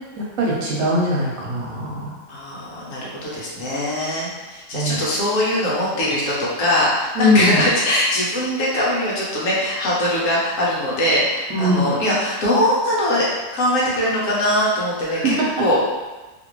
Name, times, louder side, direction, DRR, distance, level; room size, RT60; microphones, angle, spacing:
voice 1, 0.4-2.1 4.7-5.0 7.2-7.6 11.5-11.9 15.1-15.2, left 1 dB, 75° right, -4 dB, 1.2 m, -20 dB
voice 2, 2.3-13.3 13.5-15.8, left 1 dB, 70° left, -6 dB, 1.2 m, -21 dB
2.9 x 2.5 x 3.0 m, 1.2 s
omnidirectional pair, 1.5 m